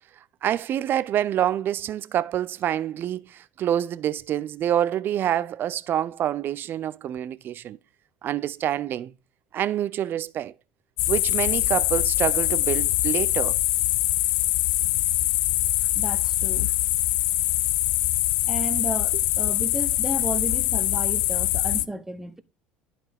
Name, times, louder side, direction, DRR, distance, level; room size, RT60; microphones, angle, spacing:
voice 1, 0.4-7.8 8.2-9.1 9.5-10.5 11.1-13.6, right 11 dB, 45° right, 0.5 m, -27 dB
sound 1, 11.0-21.9, left 17 dB, 80° left, 0.3 m, -23 dB
voice 2, 15.9-16.7 18.5-22.4, right 2 dB, 10° right, 0.8 m, -33 dB
11.0 x 4.2 x 3.5 m
hypercardioid pair, 80°, 5 cm